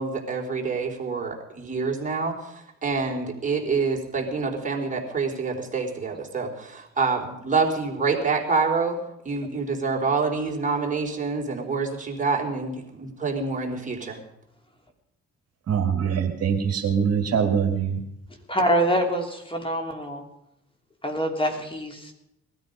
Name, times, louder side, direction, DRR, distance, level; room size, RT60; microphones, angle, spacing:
voice 1, 0.0-9.0 9.2-14.2, right 4 dB, 25° right, 0 dB, 3.8 m, -27 dB
voice 2, 15.7-18.0, right 7 dB, 55° right, 4 dB, 1.9 m, -23 dB
voice 3, 18.5-20.2 21.0-22.1, equal, 15° left, 3 dB, 3.0 m, -25 dB
19.0 x 13.0 x 5.3 m, 0.83 s
cardioid pair, 90°, 30 cm